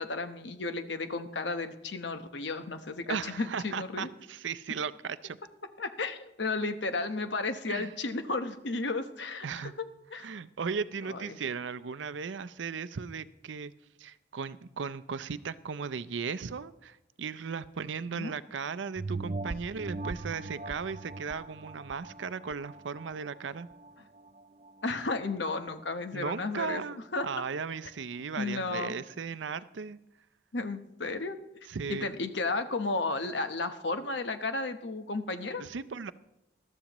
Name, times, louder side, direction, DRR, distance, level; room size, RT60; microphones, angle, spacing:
voice 1, 0.0-4.1 5.8-9.9 10.1-10.3 11.0-11.4 18.1-18.4 24.8-26.8 27.1-27.3 28.4-28.9 30.5-31.4 31.9-35.6, left 3 dB, 75° left, 8 dB, 1.0 m, -33 dB
voice 2, 3.1-5.4 7.7-7.9 9.4-9.7 10.2-13.7 14.0-23.7 26.1-30.0 31.7-32.1 35.6-36.1, right 5 dB, 85° right, 15 dB, 0.5 m, -36 dB
sound 1, 19.0-23.9 24.4-24.5, right 2 dB, 35° right, 0.5 m, -40 dB
20.5 x 13.0 x 3.0 m, 0.90 s
head